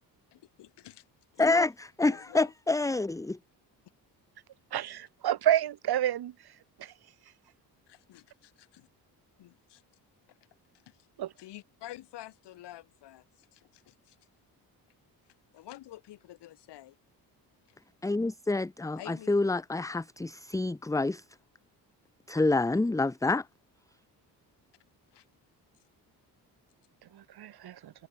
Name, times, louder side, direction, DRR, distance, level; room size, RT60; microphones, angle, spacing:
voice 1, 0.3-1.0 1.3-1.4 2.1-2.5 7.9-8.9 9.4-9.8 10.3-10.4 10.9-11.1 11.4-14.2 15.5-17.0 17.7-17.8 19.0-19.3 25.1-25.3, left 14 dB, 85° left, 5.4 m, -49 dB
voice 2, 1.4-3.4 18.0-21.2 22.3-23.5, left 2 dB, 10° left, 0.8 m, -27 dB
voice 3, 4.7-6.3 6.8-6.9 11.2-11.3 27.1-27.9, right 11 dB, 65° right, 1.8 m, -29 dB
cardioid pair, 75°, 40 cm